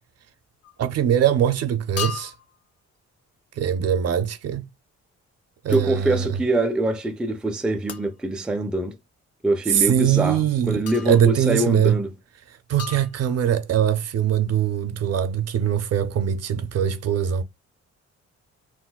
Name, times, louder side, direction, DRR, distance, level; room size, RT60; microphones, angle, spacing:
sound 1, 0.6-0.9 2.0-2.6 5.7-5.9 7.9-8.2 9.8-9.9 10.9-11.4 12.8-13.6, left 7 dB, 55° left, 0.6 m, -35 dB
voice 1, 0.8-2.3 3.6-4.7 5.6-6.3 9.7-12.0 12.7-17.4, right 9 dB, 60° right, 0.5 m, -22 dB
voice 2, 5.7-9.0 9.4-12.1, right 2 dB, 5° right, 0.3 m, -24 dB
3.9 x 2.2 x 2.2 m
cardioid pair, 90°, 29 cm